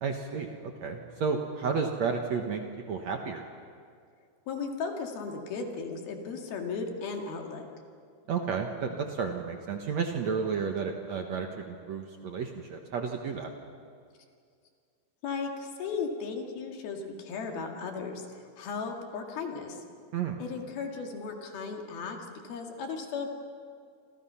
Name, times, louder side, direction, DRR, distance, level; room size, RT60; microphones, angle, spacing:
voice 1, 0.0-2.6 2.9-3.4 8.3-13.5 20.1-20.4, right 5 dB, 60° right, 3 dB, 2.0 m, -32 dB
voice 2, 4.5-7.7 15.2-19.8 20.4-22.2 22.4-23.3, left 5 dB, 70° left, 2 dB, 4.1 m, -36 dB
28.5 x 27.0 x 5.7 m, 2.2 s
omnidirectional pair, 4.5 m